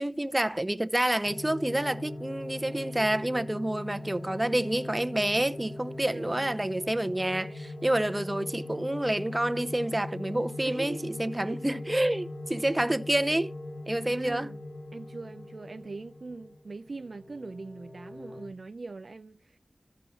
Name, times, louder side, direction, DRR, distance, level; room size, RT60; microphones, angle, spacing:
voice 1, 0.0-13.5 13.9-14.5, right 1 dB, 25° right, 0.6 m, -28 dB
sound 1, 1.2-18.5, left 1 dB, 75° left, 2.8 m, -40 dB
voice 2, 6.1-6.5 10.6-11.6 14.1-14.6 14.9-19.6, right 3 dB, 70° right, 0.4 m, -42 dB
14.0 x 5.3 x 2.9 m
cardioid pair, 40°, 0 cm